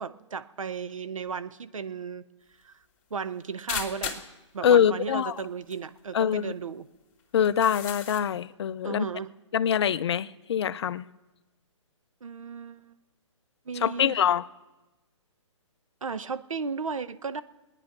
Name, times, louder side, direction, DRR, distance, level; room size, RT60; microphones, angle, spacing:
voice 1, 0.0-2.3 2.6-2.7 3.1-4.3 4.5-6.9 8.8-9.3 12.2-12.9 13.7-14.2 16.0-17.4, right 5 dB, 90° right, 0.8 m, -35 dB
sound 1, 3.7-4.3 5.4-5.5 5.7-5.8 6.3-6.4 7.4-8.2, left 7 dB, 30° left, 1.8 m, -35 dB
voice 2, 4.6-5.4 6.1-6.5 7.3-9.1 9.5-11.1 13.8-14.4, left 8 dB, 55° left, 0.6 m, -24 dB
22.0 x 9.8 x 6.0 m
hypercardioid pair, 145°, 17 cm